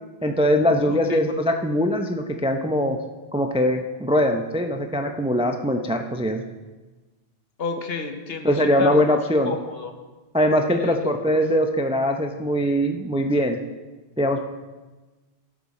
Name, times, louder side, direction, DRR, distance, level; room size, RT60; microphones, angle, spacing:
voice 1, 0.2-3.0 3.3-6.4 8.4-9.6 10.3-13.6 14.2-14.5, equal, 10° right, 5 dB, 0.3 m, -22 dB
voice 2, 0.9-1.2 7.6-8.5 8.8-9.2 9.4-9.9 10.8-11.1, left 4 dB, 65° left, 6 dB, 1.1 m, -31 dB
12.0 x 7.5 x 4.2 m, 1.2 s
omnidirectional pair, 1.1 m